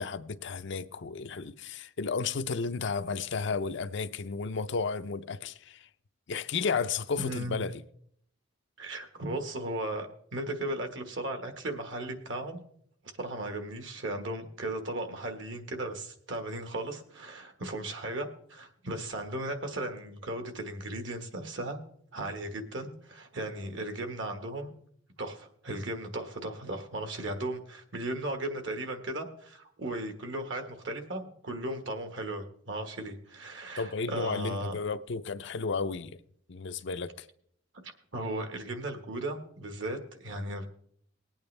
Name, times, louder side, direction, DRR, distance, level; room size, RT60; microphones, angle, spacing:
voice 1, 0.0-5.9 6.3-7.8 33.8-36.2 36.5-37.3, left 5 dB, 70° left, 0.6 m, -33 dB
voice 2, 7.2-7.6 8.8-10.1 10.3-12.6 13.2-21.8 22.1-24.7 25.2-34.7 38.1-40.7, right 1 dB, 70° right, 1.5 m, -36 dB
20.0 x 8.8 x 3.3 m
head